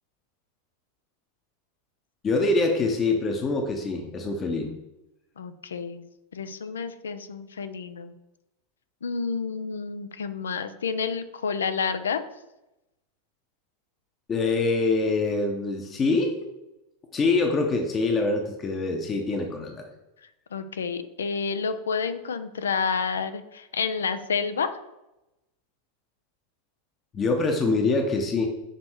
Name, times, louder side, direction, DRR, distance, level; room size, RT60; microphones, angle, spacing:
voice 1, 2.2-4.7 14.3-16.3 17.1-19.8 27.1-28.5, left 3 dB, 30° left, 3 dB, 0.8 m, -24 dB
voice 2, 5.4-6.0 6.3-8.2 9.0-12.2 20.5-24.8, left 5 dB, 75° left, 11 dB, 0.4 m, -29 dB
6.6 x 3.1 x 4.5 m, 0.94 s
figure-of-eight pair, 85°, 0 cm